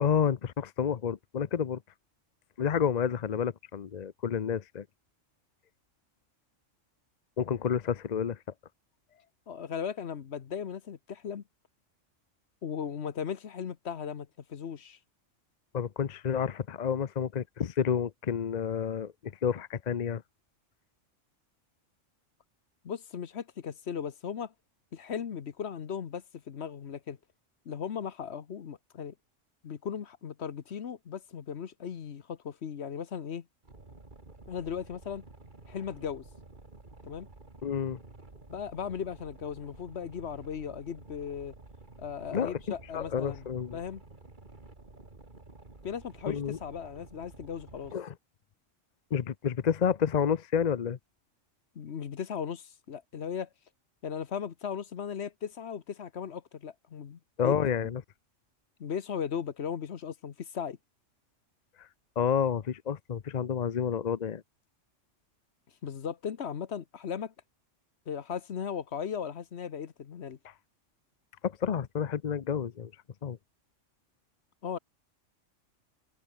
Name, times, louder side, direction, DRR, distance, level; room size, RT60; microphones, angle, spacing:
voice 1, 0.0-1.8 2.6-4.8 7.4-8.4 15.7-20.2 37.6-38.0 42.3-43.8 46.3-46.6 47.9-48.1 49.1-51.0 57.4-58.0 61.8-61.9 62.2-64.4 71.4-72.9 73.2-73.4, left 7 dB, 45° left, 0.6 m, -30 dB
voice 2, 9.5-11.4 12.6-15.0 22.8-24.5 24.9-27.2 27.6-29.1 29.6-33.4 34.5-35.2 35.7-36.2 37.0-37.3 38.5-41.5 42.0-43.4 43.7-44.0 45.8-47.9 51.7-53.5 54.0-57.5 57.8-57.9 58.8-60.8 65.8-67.3 68.1-70.4 74.6-74.8, left 7 dB, 60° left, 1.2 m, -37 dB
Boat Water vehicle, 33.6-47.9, right 2 dB, 40° right, 2.8 m, -52 dB
omnidirectional pair, 1.3 m